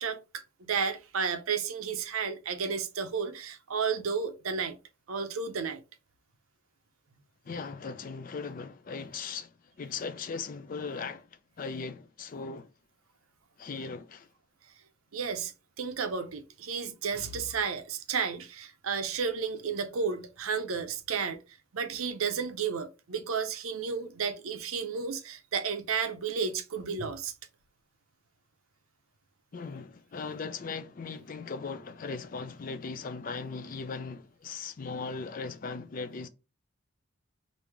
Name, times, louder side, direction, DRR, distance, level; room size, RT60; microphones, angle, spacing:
voice 1, 0.0-4.8 5.1-5.8 15.1-21.4 21.7-27.3, right 6 dB, 85° right, 0.6 m, -32 dB
voice 2, 7.4-12.7 13.6-14.3 29.5-36.3, left 4 dB, 40° left, 0.4 m, -38 dB
3.2 x 2.6 x 3.3 m
head